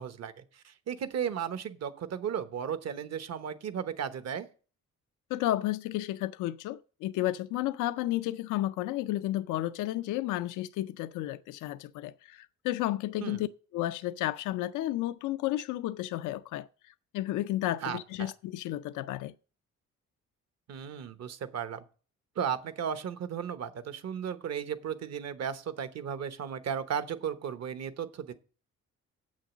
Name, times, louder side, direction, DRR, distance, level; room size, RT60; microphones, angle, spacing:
voice 1, 0.0-4.5 13.2-13.4 17.8-18.3 20.7-21.8 22.4-28.3, right 8 dB, 60° right, 1.0 m, -35 dB
voice 2, 5.3-13.5 13.7-19.3, left 15 dB, 85° left, 0.5 m, -32 dB
8.0 x 6.4 x 7.3 m
cardioid pair, 90°, 30 cm